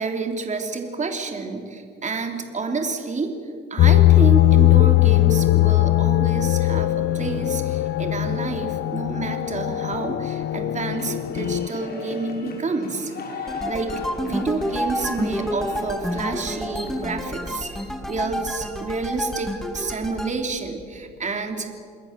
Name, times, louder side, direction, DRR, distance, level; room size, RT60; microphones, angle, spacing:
voice 1, 0.0-3.3 3.7-21.8, right 4 dB, 35° right, 4 dB, 3.5 m, -29 dB
sound 1, 3.8-11.7, left 16 dB, 70° left, 0.7 m, -19 dB
sound 2, 10.9-17.6, left 4 dB, 50° left, 6.3 m, -37 dB
sound 3, 13.5-20.3, equal, ahead, 2.7 m, -29 dB
28.0 x 20.5 x 7.6 m, 2.2 s
cardioid pair, 90°, 20 cm